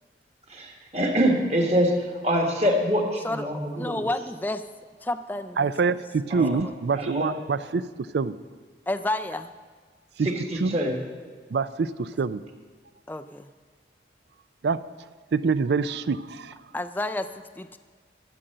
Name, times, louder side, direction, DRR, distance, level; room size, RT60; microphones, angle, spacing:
voice 1, 0.5-4.3 6.3-6.5 6.9-7.3 10.2-11.0, equal, 35° right, 2 dB, 1.5 m, -25 dB
voice 2, 3.2-4.6 5.0-5.7 6.5-6.7 8.9-9.5 13.1-13.5 16.7-17.8, left 2 dB, 10° left, 9 dB, 0.3 m, -31 dB
voice 3, 5.6-7.8 8.1-8.3 10.2-10.3 10.6-10.8 11.5-12.4 14.6-14.8 15.3-16.5, right 4 dB, 70° right, 15 dB, 0.4 m, -25 dB
12.5 x 7.6 x 6.7 m, 1.6 s
head